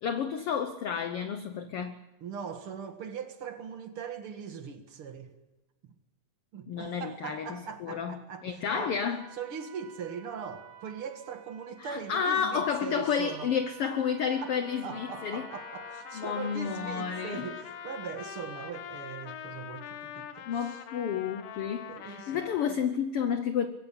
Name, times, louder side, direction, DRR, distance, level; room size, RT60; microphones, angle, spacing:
voice 1, 0.0-2.0 6.7-9.3 11.8-15.4 16.1-17.4 20.5-23.7, left 7 dB, 75° left, 1.3 m, -31 dB
voice 2, 2.2-5.3 5.8-5.9 6.5-9.0 9.3-13.5 14.4-14.5 14.8-20.8 21.9-22.8, right 6 dB, 50° right, 2.2 m, -40 dB
Trumpet, 8.8-18.4, right 6 dB, 85° right, 3.7 m, -52 dB
Trumpet 2, 14.4-22.8, left 9 dB, 90° left, 2.9 m, -44 dB
22.0 x 16.0 x 8.6 m
omnidirectional pair, 3.8 m